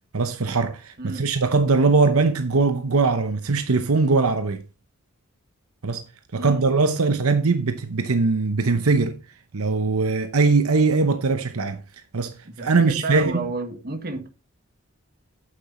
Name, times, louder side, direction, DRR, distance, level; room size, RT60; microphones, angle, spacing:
voice 1, 0.1-4.6 5.8-6.0 6.3-9.2 9.5-11.8 12.1-13.4, right 4 dB, 75° right, 0.9 m, -21 dB
voice 2, 6.3-6.6 12.4-14.3, right 3 dB, 45° right, 1.6 m, -31 dB
8.8 x 7.9 x 4.2 m
head